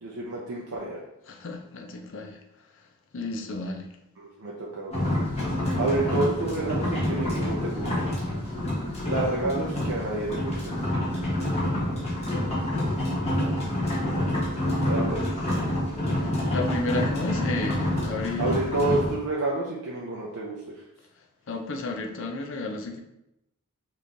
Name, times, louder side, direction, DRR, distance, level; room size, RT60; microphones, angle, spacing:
voice 1, 0.0-1.0 4.2-5.0 5.8-8.1 9.0-10.8 14.9-15.3 18.4-20.6, right 2 dB, 80° right, -4 dB, 0.7 m, -29 dB
voice 2, 1.3-2.4 3.1-3.9 14.4-14.6 16.2-18.5 21.5-23.0, left 2 dB, 60° left, 3 dB, 0.6 m, -32 dB
sound 1, 4.9-19.1, left 1 dB, 30° left, 1.1 m, -27 dB
5.3 x 3.2 x 2.6 m, 0.86 s
head